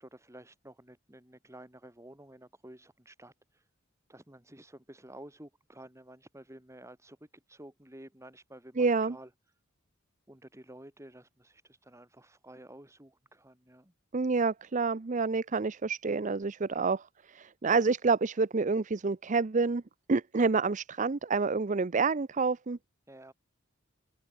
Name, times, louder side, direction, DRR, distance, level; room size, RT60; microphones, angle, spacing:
voice 1, 0.0-3.6 4.1-9.3 10.3-13.9 23.1-23.3, right 1 dB, 15° right, 4.0 m, -52 dB
voice 2, 8.8-9.2 14.1-19.8 20.1-22.8, right 4 dB, 40° right, 0.6 m, -28 dB
head